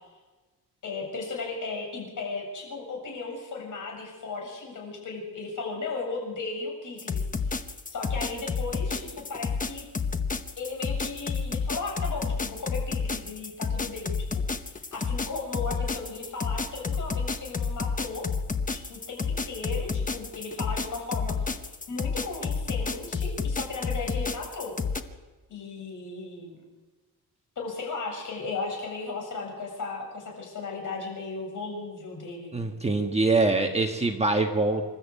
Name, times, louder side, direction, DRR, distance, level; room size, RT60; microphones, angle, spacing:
voice 1, 0.8-7.6 7.9-9.8 10.6-18.3 18.7-21.5 21.9-24.7 25.5-26.6 27.6-32.6, left 3 dB, 55° left, 0 dB, 7.3 m, -36 dB
sound 1, 7.0-25.0, left 5 dB, 20° left, 1.0 m, -30 dB
voice 2, 32.5-34.8, right 3 dB, 15° right, 3 dB, 1.5 m, -24 dB
27.0 x 12.5 x 8.4 m, 1.2 s
cardioid pair, 140°, 38 cm